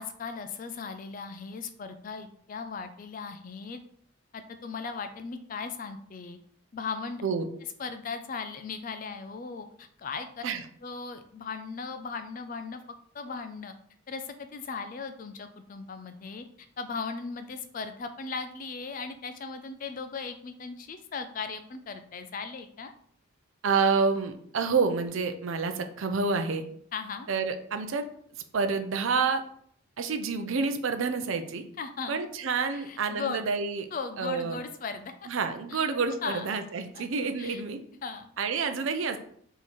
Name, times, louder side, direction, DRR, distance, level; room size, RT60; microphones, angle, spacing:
voice 1, 0.0-3.8 4.3-6.4 6.7-7.2 7.8-10.4 10.8-12.8 13.1-13.7 14.1-22.9 26.9-27.3 31.8-32.2 32.7-33.5 33.9-35.1 35.7-35.9 36.2-36.5 36.9-37.0 37.4-37.6 38.0-38.6, left 5 dB, 40° left, 9 dB, 0.3 m, -37 dB
voice 2, 23.6-26.6 27.3-28.0 28.5-29.4 30.0-31.6 32.1-33.9 34.2-34.6 35.3-37.8 38.4-39.2, right 5 dB, 70° right, 7 dB, 0.5 m, -28 dB
3.7 x 3.1 x 4.2 m, 0.63 s
head